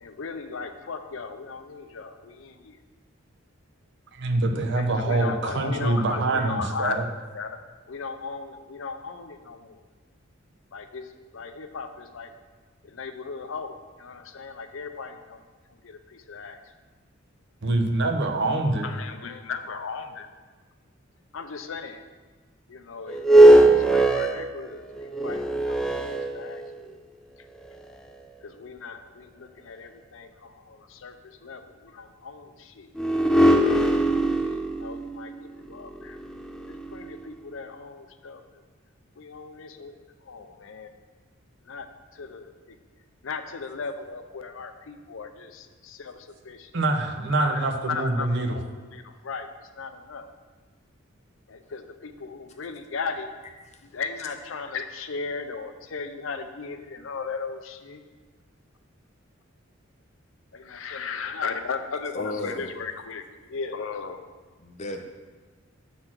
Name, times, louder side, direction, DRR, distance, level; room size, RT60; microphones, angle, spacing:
voice 1, 0.0-2.8 4.8-7.0 7.3-7.6 7.9-9.8 10.7-11.1 11.3-12.3 12.8-15.4 15.8-16.6 18.8-20.3 21.3-22.0 22.7-25.8 26.3-26.6 28.4-32.9 34.3-36.2 36.7-38.4 39.2-39.9 40.3-40.9 41.7-41.9 42.1-42.8 43.2-46.2 46.4-46.7 47.4-48.7 48.9-49.5 49.8-50.3 51.5-53.3 53.9-58.0 60.5-63.2 63.5-64.2, left 5 dB, 70° left, 8 dB, 0.6 m, -36 dB
voice 2, 4.1-7.1 17.6-18.9 46.7-48.6, right 2 dB, 60° right, 4 dB, 0.8 m, -25 dB
sound 1, 23.1-26.9 27.6-27.7 33.0-37.2, right 1 dB, 5° left, 0.4 m, -20 dB
voice 3, 62.1-62.7 64.6-65.0, left 2 dB, 35° left, 4 dB, 0.7 m, -33 dB
7.7 x 4.2 x 5.9 m, 1.4 s
head